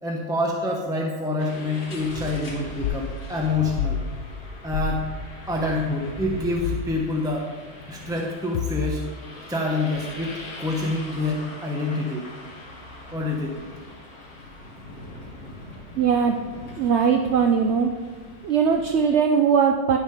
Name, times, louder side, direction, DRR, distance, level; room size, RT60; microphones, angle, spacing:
voice 1, 0.0-4.0 4.6-5.0 5.5-7.5 7.9-9.1 9.5-10.3 10.6-12.2 13.1-13.6, left 2 dB, 5° right, -1 dB, 0.6 m, -26 dB
sound 1, 1.4-19.0, left 1 dB, 65° left, 2.2 m, -42 dB
sound 2, 2.0-7.0, equal, 40° right, 0.9 m, -39 dB
sound 3, 2.8-3.1 3.8-4.0 4.7-5.0 6.6-6.9 8.5-9.1, left 7 dB, 85° left, 1.2 m, -27 dB
voice 2, 16.0-16.4 16.8-17.9 18.4-20.0, right 6 dB, 70° right, 4 dB, 0.6 m, -20 dB
10.5 x 6.2 x 5.1 m, 1.4 s
omnidirectional pair, 1.8 m